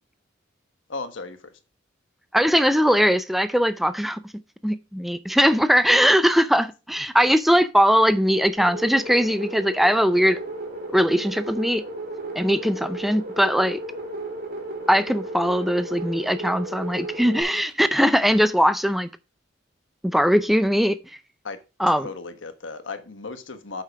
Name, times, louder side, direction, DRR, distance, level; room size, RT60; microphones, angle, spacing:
voice 1, 0.9-1.6 21.4-21.6 21.9-23.8, left 3 dB, 85° left, 1.2 m, -35 dB
voice 2, 2.3-4.2 4.6-10.4 10.9-11.8 12.4-13.8 14.9-19.1 20.0-21.0 21.8-22.1, equal, ahead, 0.4 m, -20 dB
sound 1, 8.6-17.4, right 2 dB, 50° right, 2.6 m, -34 dB
8.2 x 5.7 x 4.7 m
head